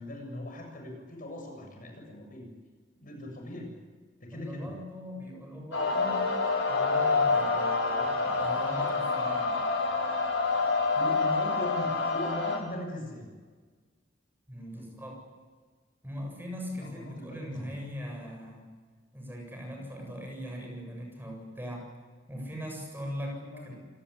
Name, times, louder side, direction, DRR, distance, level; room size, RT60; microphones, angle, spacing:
voice 1, 0.0-2.5 3.0-3.7 4.2-4.7 11.0-13.3 14.7-14.8 16.7-17.8 23.3-23.7, left 1 dB, 45° left, 2 dB, 7.3 m, -40 dB
voice 2, 4.3-6.3 6.6-9.6 14.5-15.2 16.0-18.7 19.1-21.9 22.3-23.7, equal, 10° right, 0 dB, 7.8 m, -40 dB
sound 1, 5.7-12.6, left 4 dB, 90° left, 6.4 m, -27 dB
28.0 x 19.5 x 8.6 m, 1.4 s
head